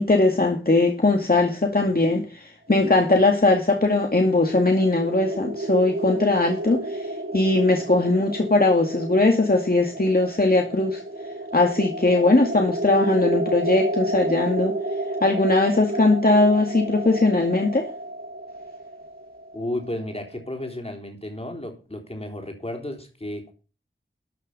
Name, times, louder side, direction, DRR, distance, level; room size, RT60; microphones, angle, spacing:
voice 1, 0.0-11.0 11.5-14.7 15.2-17.9, left 2 dB, 50° left, 2 dB, 2.2 m, -20 dB
sound 1, 3.6-20.4, right 1 dB, 65° right, 1.4 m, -31 dB
voice 2, 19.5-23.5, left 1 dB, 30° left, 3 dB, 3.8 m, -33 dB
13.0 x 6.7 x 5.6 m, 0.36 s
wide cardioid pair, 40°, 20 cm